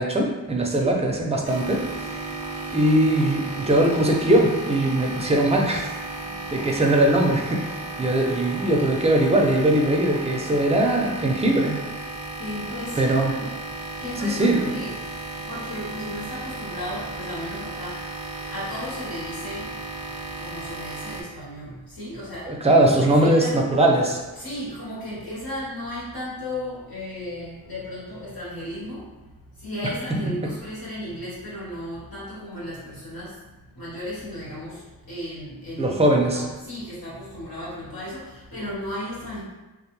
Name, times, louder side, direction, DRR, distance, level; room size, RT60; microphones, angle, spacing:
voice 1, 0.0-2.4 2.7-5.9 6.5-11.8 13.0-13.3 14.2-14.7 22.5-24.2 30.1-30.2 35.8-36.4, right 1 dB, 20° right, 0 dB, 0.4 m, -21 dB
sound 1, 1.4-21.2, right 2 dB, 80° right, 0.5 m, -34 dB
voice 2, 2.4-2.7 6.1-6.7 12.1-15.0 15.4-19.7 20.2-22.6 23.0-23.7 24.4-29.2 29.5-36.0 36.3-39.4, left 1 dB, 75° left, -9 dB, 1.2 m, -35 dB
2.3 x 2.1 x 3.0 m, 1.1 s
wide cardioid pair, 55°, 36 cm